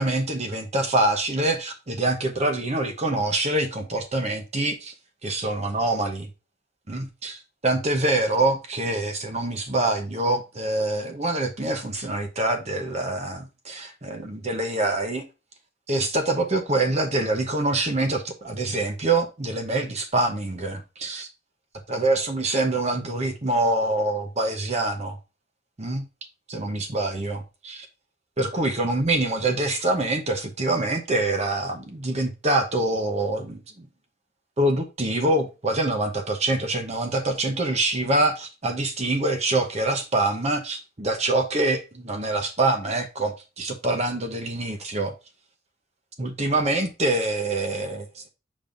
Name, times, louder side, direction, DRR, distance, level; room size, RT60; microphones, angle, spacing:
voice 1, 0.0-4.9 5.2-6.3 6.9-15.3 15.9-21.3 21.9-25.2 25.8-26.0 26.5-27.9 28.4-33.9 34.6-45.1 46.2-48.2, right 2 dB, 35° right, 0.8 m, -25 dB
6.8 x 5.3 x 2.6 m
head